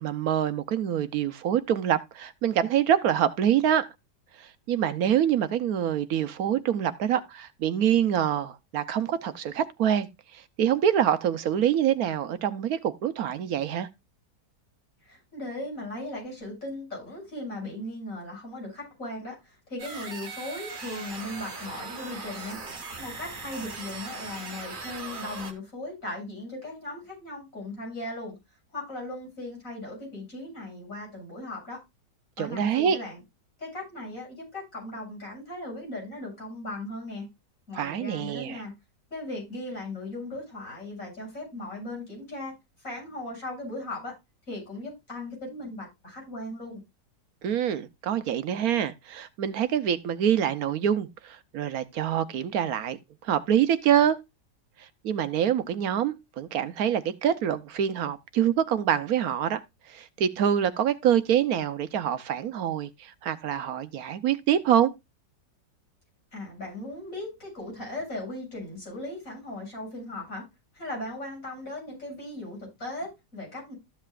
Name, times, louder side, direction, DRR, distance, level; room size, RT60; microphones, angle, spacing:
voice 1, 0.0-3.9 4.4-13.9 32.4-33.0 37.8-38.6 47.4-53.0 53.2-54.2 54.8-59.6 59.9-64.9, right 9 dB, 65° right, 1.2 m, -25 dB
voice 2, 15.0-22.6 23.0-28.4 28.7-31.8 32.4-33.2 33.6-37.3 37.7-38.7 39.1-42.5 42.8-44.1 44.5-46.8 66.3-70.4 70.7-73.8, left 1 dB, 50° left, 8.3 m, -38 dB
sound 1, 19.8-25.5, right 3 dB, 30° right, 1.6 m, -39 dB
14.0 x 7.8 x 2.4 m
omnidirectional pair, 1.8 m